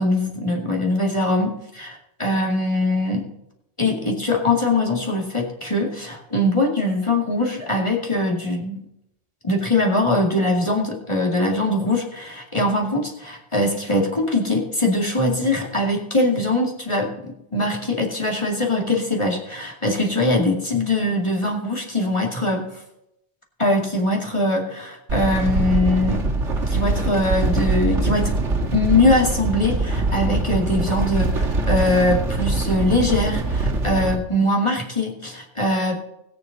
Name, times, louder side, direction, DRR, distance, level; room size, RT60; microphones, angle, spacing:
voice 1, 0.0-3.3 3.8-8.9 9.4-22.7 23.6-26.3 26.7-28.3 28.7-36.0, left 1 dB, 25° left, -1 dB, 2.4 m, -22 dB
sound 1, 25.1-34.2, right 2 dB, 85° right, 2.1 m, -23 dB
20.0 x 7.4 x 4.0 m, 0.80 s
omnidirectional pair, 1.2 m